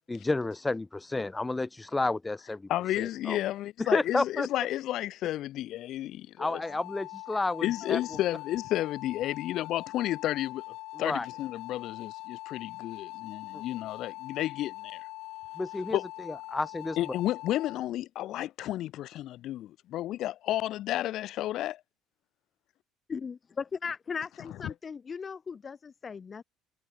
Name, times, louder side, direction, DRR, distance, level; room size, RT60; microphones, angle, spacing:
voice 1, 0.1-2.7 3.0-3.4 3.8-4.5 6.4-8.0 11.0-11.3 13.5-13.6 15.6-16.0 16.3-17.0, left 2 dB, 10° left, 0.6 m, -31 dB
voice 2, 2.7-6.6 7.6-10.6 11.0-15.0 15.9-16.0 17.0-21.8, left 14 dB, 60° left, 1.1 m, -32 dB
sound 1, 6.5-17.8, left 19 dB, 75° left, 2.3 m, -43 dB
voice 3, 23.1-26.4, left 5 dB, 30° left, 1.7 m, -37 dB
cardioid pair, 130°, 0 cm